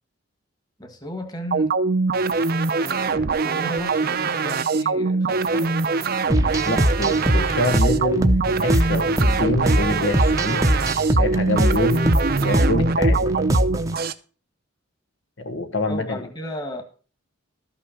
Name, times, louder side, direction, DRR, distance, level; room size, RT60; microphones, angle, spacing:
voice 1, 0.8-1.7 2.8-5.8 15.8-16.8, equal, 20° left, 1.7 m, -35 dB
sound 1, 1.5-14.1, right 4 dB, 45° right, 0.7 m, -23 dB
sound 2, 6.3-14.0, equal, 15° right, 0.8 m, -22 dB
voice 2, 6.6-10.7 11.1-13.3 15.4-16.2, left 1 dB, 65° left, 1.1 m, -26 dB
13.0 x 5.8 x 6.4 m
head